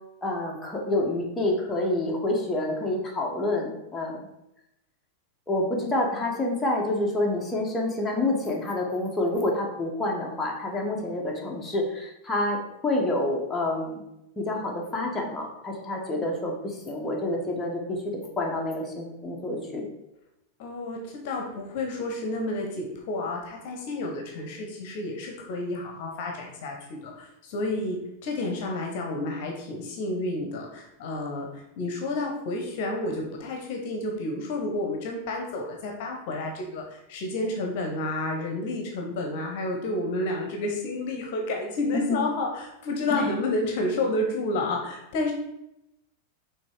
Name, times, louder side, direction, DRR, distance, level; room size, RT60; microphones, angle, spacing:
voice 1, 0.2-4.2 5.5-14.0 14.4-19.8 41.9-42.2 43.1-43.3, left 2 dB, 10° left, -2 dB, 1.3 m, -28 dB
voice 2, 20.6-28.0 28.2-45.3, left 2 dB, 50° left, 2 dB, 1.1 m, -30 dB
5.9 x 3.7 x 4.7 m, 0.88 s
figure-of-eight pair, 90°, 0 cm